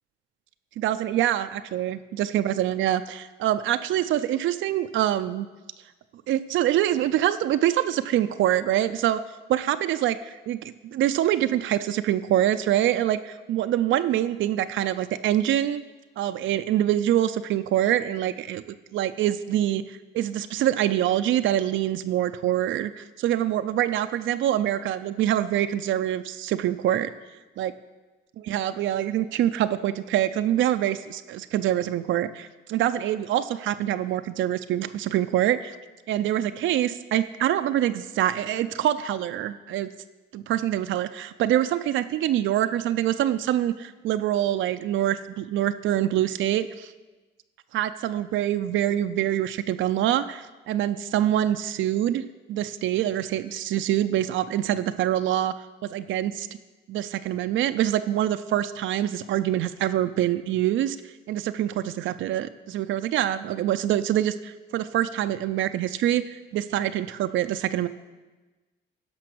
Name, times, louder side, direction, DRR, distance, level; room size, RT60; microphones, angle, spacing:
voice 1, 0.8-5.5 6.3-9.2 9.5-15.8 16.2-18.6 18.9-27.1 27.6-27.7 28.4-35.8 36.1-39.9 40.3-46.9 47.7-52.2 52.5-55.5 55.8-56.5 56.9-67.9, right 12 dB, 75° right, 10 dB, 0.5 m, -25 dB
10.5 x 5.9 x 6.1 m, 1.2 s
cardioid pair, 90°, 20 cm